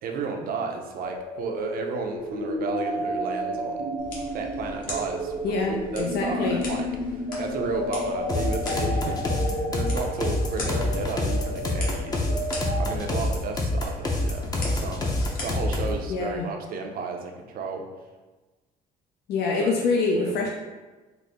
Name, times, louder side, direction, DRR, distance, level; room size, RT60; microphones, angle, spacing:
voice 1, 0.0-3.9 4.3-17.8 19.6-19.8 20.2-20.3, right 4 dB, 60° right, 3 dB, 0.5 m, -33 dB
sound 1, 1.0-12.9, equal, 75° right, 1.0 m, -32 dB
sound 2, 4.0-16.0, left 2 dB, 55° left, 1.1 m, -40 dB
voice 2, 5.4-6.6 16.1-16.5 19.3-20.5, left 3 dB, 70° left, -1 dB, 0.5 m, -25 dB
sound 3, 8.3-16.0, left 2 dB, 20° left, 0.6 m, -26 dB
4.0 x 2.0 x 3.3 m, 1.3 s
cardioid pair, 110°, 17 cm